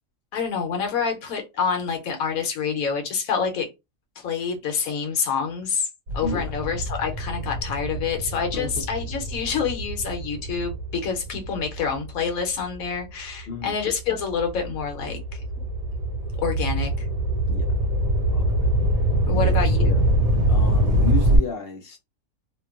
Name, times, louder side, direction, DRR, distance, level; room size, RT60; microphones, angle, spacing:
voice 1, 0.3-3.7 4.2-5.9 6.1-15.4 16.4-17.1 19.3-20.0, left 6 dB, 85° left, 1.1 m, -27 dB
sound 1, 6.1-12.8 13.4-21.4, right 1 dB, 90° right, 1.3 m, -24 dB
voice 2, 6.2-6.5 8.5-8.8 13.5-13.8 17.5-17.7 18.3-18.4 19.3-19.6 20.5-22.0, left 3 dB, 65° left, 0.6 m, -32 dB
2.9 x 2.2 x 2.3 m
omnidirectional pair, 1.5 m